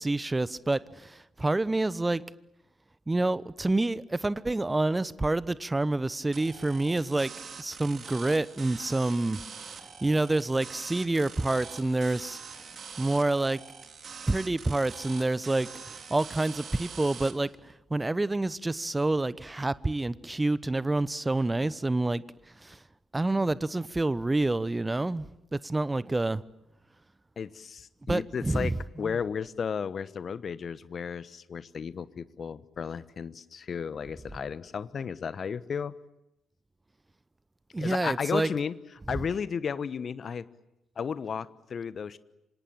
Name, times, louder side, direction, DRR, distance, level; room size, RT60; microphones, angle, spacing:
voice 1, 0.0-2.2 3.1-7.3 7.6-9.4 9.7-12.4 13.0-13.6 14.3-22.2 22.6-22.8 23.1-26.4 28.1-28.7 29.0-29.1 37.7-38.5, right 2 dB, 20° right, 1.0 m, -28 dB
sound 1, 6.3-17.3, right 6 dB, 50° right, 3.4 m, -44 dB
voice 2, 27.4-35.9 37.8-38.7 39.1-40.5 41.0-42.2, left 6 dB, 50° left, 1.1 m, -34 dB
27.5 x 26.0 x 7.5 m
figure-of-eight pair, 40°, 0 cm